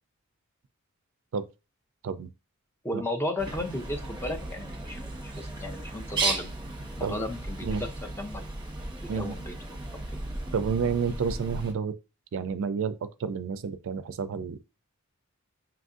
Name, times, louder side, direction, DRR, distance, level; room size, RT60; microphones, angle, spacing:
voice 1, 2.8-6.5 7.0-7.9 8.2-8.4 9.1-9.8, left 1 dB, 10° left, 0.5 m, -34 dB
Bird, 3.4-11.7, right 2 dB, 20° right, 1.0 m, -35 dB
voice 2, 10.5-11.9 12.3-14.8, right 6 dB, 60° right, 0.4 m, -30 dB
5.7 x 2.5 x 2.4 m
head